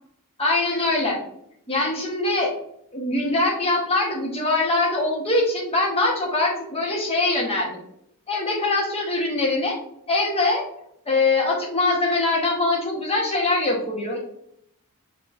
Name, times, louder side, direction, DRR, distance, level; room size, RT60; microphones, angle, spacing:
voice 1, 0.4-1.2 1.7-2.5 2.9-7.8 8.3-9.7 10.1-10.6 11.1-14.2, left 2 dB, 25° left, -1 dB, 1.1 m, -23 dB
5.9 x 3.1 x 2.5 m, 0.74 s
head